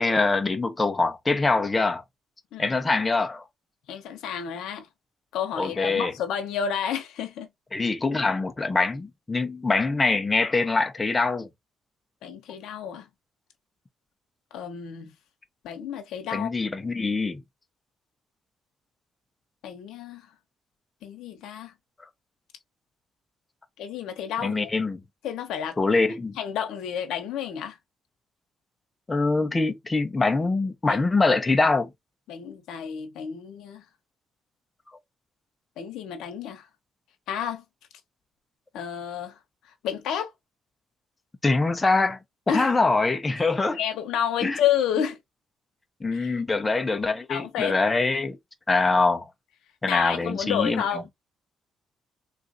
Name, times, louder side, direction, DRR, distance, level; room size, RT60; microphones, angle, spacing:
voice 1, 0.0-2.0 2.6-3.4 5.5-6.1 7.7-11.5 16.3-17.4 24.4-25.0 25.8-26.3 29.1-31.9 41.4-42.2 42.5-43.8 44.4-44.6 46.0-48.4 48.7-49.3 49.8-51.0, left 3 dB, 20° left, 0.6 m, -24 dB
voice 2, 3.9-4.9 5.3-7.5 12.2-13.1 14.5-15.1 15.6-16.5 19.6-20.3 21.0-21.7 23.8-24.7 25.2-25.8 26.4-27.8 30.9-31.0 32.3-33.8 35.8-36.7 37.3-37.6 38.7-39.4 39.8-40.3 42.5-42.7 43.7-45.2 46.1-46.3 47.3-47.8 49.9-51.1, left 9 dB, 85° left, 0.8 m, -30 dB
3.6 x 2.5 x 2.6 m
cardioid pair, 90°, 0 cm